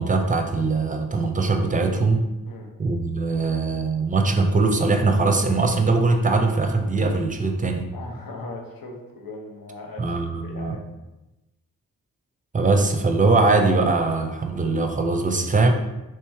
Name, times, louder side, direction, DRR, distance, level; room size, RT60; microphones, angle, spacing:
voice 1, 0.0-2.2 2.8-7.8 10.0-10.8 12.5-15.7, right 3 dB, 20° right, 5 dB, 0.6 m, -21 dB
voice 2, 7.9-10.8, left 2 dB, 70° left, 0 dB, 0.9 m, -38 dB
3.2 x 3.0 x 3.4 m, 1.0 s
cardioid pair, 40°, 36 cm